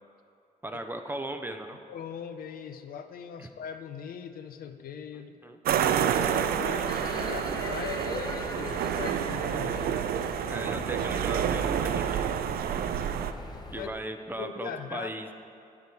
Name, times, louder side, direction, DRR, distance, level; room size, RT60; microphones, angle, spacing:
voice 1, 0.6-1.8 3.4-3.5 5.1-5.6 10.5-12.3 13.7-15.3, right 1 dB, 15° right, 6 dB, 0.5 m, -37 dB
voice 2, 1.9-10.0 13.8-13.9 14.3-15.1, left 7 dB, 70° left, 8 dB, 0.5 m, -40 dB
sound 1, 5.7-13.3, right 9 dB, 75° right, 0.4 m, -29 dB
sound 2, 6.9-13.9, left 2 dB, 25° left, 0.8 m, -40 dB
8.5 x 6.9 x 4.7 m, 2.5 s
cardioid pair, 95°, 16 cm